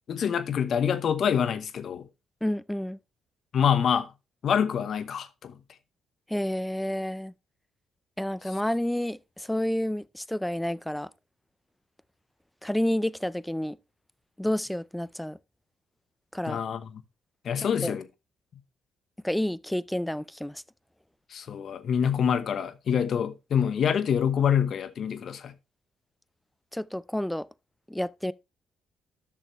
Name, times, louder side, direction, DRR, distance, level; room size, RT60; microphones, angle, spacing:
voice 1, 0.1-2.1 3.5-4.1 4.4-5.6 16.5-16.9 17.4-18.0 21.3-25.5, left 8 dB, 60° left, 0.9 m, -26 dB
voice 2, 2.4-3.0 6.3-7.3 8.2-11.1 12.6-13.8 14.4-15.4 16.3-16.6 17.6-18.0 19.2-20.6 26.7-27.5 27.9-28.3, left 1 dB, 5° left, 0.4 m, -30 dB
11.0 x 6.5 x 3.0 m
supercardioid pair, 70°, 0 cm